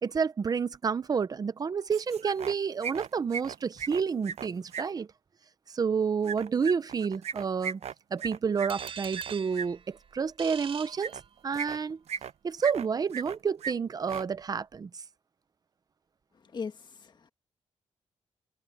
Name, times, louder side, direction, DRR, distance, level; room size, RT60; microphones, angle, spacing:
voice 1, 0.0-5.1 5.7-7.8 8.1-11.2 11.4-12.0 12.4-14.9, right 6 dB, 35° right, 0.7 m, -29 dB
sound 1, 1.9-2.5 2.8-4.8 6.2-9.7 11.0-11.2 11.5-12.3 12.6-13.4 13.6-13.7 14.0-14.2, right 7 dB, 65° right, 0.7 m, -37 dB
sound 2, 8.7-11.7, right 7 dB, 50° right, 4.4 m, -43 dB
voice 2, 16.3-17.3, left 5 dB, 40° left, 1.8 m, -39 dB
wide cardioid pair, 150°, 12 cm